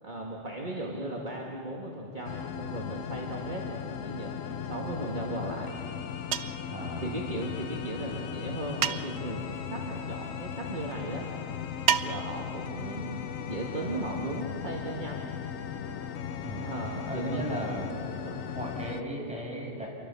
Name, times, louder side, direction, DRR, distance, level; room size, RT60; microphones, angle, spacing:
voice 1, 0.0-5.7 7.0-11.3 12.0-13.2 13.5-15.3 16.6-17.6 18.1-18.4, right 1 dB, 35° right, -2 dB, 2.3 m, -36 dB
sound 1, 2.2-19.0, left 8 dB, 85° left, 1.3 m, -37 dB
sound 2, 6.3-6.7 8.8-9.3 11.9-12.5, right 8 dB, 60° right, 0.9 m, -29 dB
voice 2, 6.7-7.0 16.4-16.7 17.1-17.9 18.5-19.9, equal, 5° right, -3 dB, 6.5 m, -36 dB
28.0 x 24.0 x 7.0 m, 2.8 s
omnidirectional pair, 1.3 m